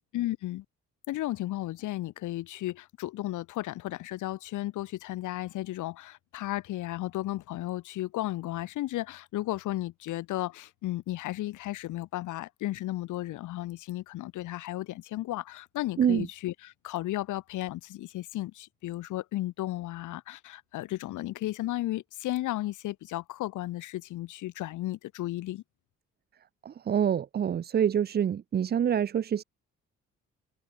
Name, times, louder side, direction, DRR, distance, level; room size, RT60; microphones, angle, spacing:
voice 1, 0.1-0.6 1.1-25.6, left 16 dB, 80° left, 0.9 m, -34 dB
voice 2, 26.6-29.4, right 8 dB, 35° right, 0.5 m, -26 dB
cardioid pair, 90°, 30 cm